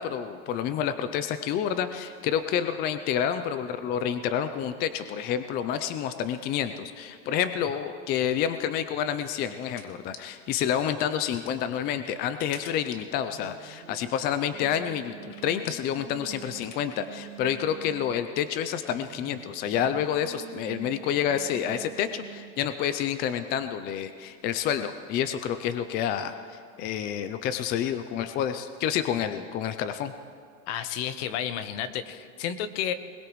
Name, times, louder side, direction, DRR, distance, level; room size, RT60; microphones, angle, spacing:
voice 1, 0.0-30.1, left 9 dB, 25° left, 10 dB, 0.4 m, -29 dB
sound 1, 8.5-17.2, left 8 dB, 75° left, 1.4 m, -49 dB
Singing, 12.9-18.3 18.9-22.8, right 13 dB, 80° right, 1.9 m, -47 dB
voice 2, 30.7-32.9, left 9 dB, 55° left, 11 dB, 1.0 m, -31 dB
21.0 x 20.0 x 3.1 m, 2.2 s
supercardioid pair, 150°, 39 cm